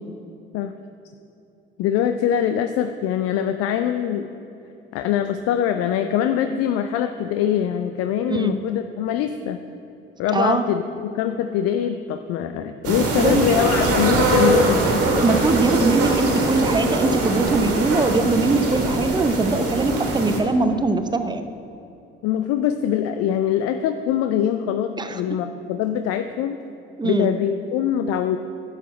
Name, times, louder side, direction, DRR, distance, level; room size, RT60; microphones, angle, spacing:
voice 1, 1.8-4.3 4.9-9.6 10.2-14.8 22.2-26.6 27.0-28.4, left 9 dB, 55° left, 8 dB, 0.5 m, -23 dB
voice 2, 10.3-10.7 13.2-13.4 15.2-21.4 25.0-25.2 27.0-27.3, right 3 dB, 15° right, 9 dB, 0.7 m, -21 dB
sound 1, 12.8-20.4, right 2 dB, 55° right, 1.8 m, -22 dB
11.0 x 6.4 x 4.6 m, 2.8 s
figure-of-eight pair, 50°, 29 cm